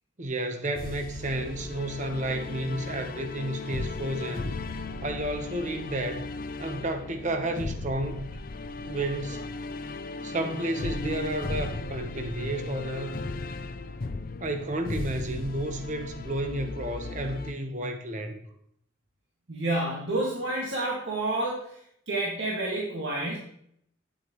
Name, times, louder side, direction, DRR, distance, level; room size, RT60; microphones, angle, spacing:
voice 1, 0.2-4.6 5.0-6.3 6.6-8.3 8.8-9.5 10.2-13.2 14.4-18.4, right 1 dB, 40° right, 1.0 m, -31 dB
sound 1, 0.7-17.5, left 3 dB, 45° left, 0.5 m, -36 dB
voice 2, 19.5-21.6 22.1-23.4, right 2 dB, 70° right, 2.0 m, -29 dB
9.8 x 8.3 x 3.0 m
head